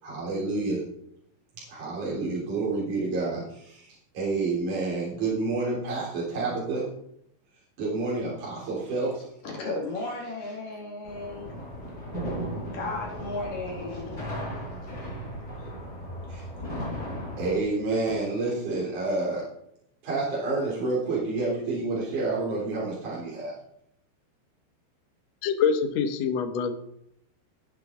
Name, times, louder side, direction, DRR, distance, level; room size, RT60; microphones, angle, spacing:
voice 1, 0.0-0.8 1.7-6.8 7.8-9.3 16.3-16.5 17.4-19.4 20.0-23.5, right 3 dB, 45° right, -7 dB, 4.9 m, -29 dB
voice 2, 9.4-11.5 12.7-14.4, left 3 dB, 55° left, -1 dB, 3.6 m, -34 dB
sound 1, 11.0-17.6, equal, 20° left, 7.3 m, -36 dB
voice 3, 25.4-26.7, left 6 dB, 80° left, 6 dB, 1.5 m, -25 dB
17.5 x 11.0 x 3.9 m, 0.74 s
omnidirectional pair, 5.1 m